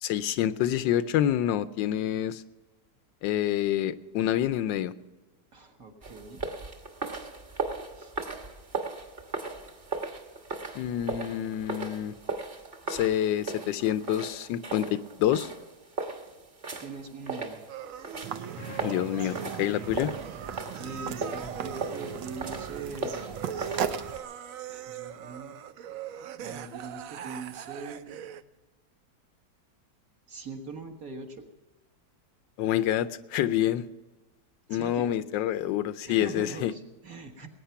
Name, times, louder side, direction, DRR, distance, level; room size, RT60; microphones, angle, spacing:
voice 1, 0.0-2.4 3.2-4.9 10.7-12.1 12.9-15.5 18.6-20.1 32.6-33.9 34.7-36.7, left 11 dB, 90° left, 14 dB, 1.3 m, -27 dB
voice 2, 5.5-6.4 7.9-8.1 16.8-17.6 20.8-23.4 24.7-25.6 26.4-28.2 30.3-31.5 34.7-35.1 36.1-37.5, right 3 dB, 50° right, 3 dB, 1.8 m, -41 dB
sound 1, 6.0-24.2, right 4 dB, 35° right, 1.4 m, -38 dB
sound 2, 17.7-28.4, right 9 dB, 70° right, 0.8 m, -41 dB
sound 3, 18.2-24.1, right 8 dB, 85° right, 1.4 m, -37 dB
20.0 x 9.3 x 5.7 m, 1.2 s
omnidirectional pair, 1.9 m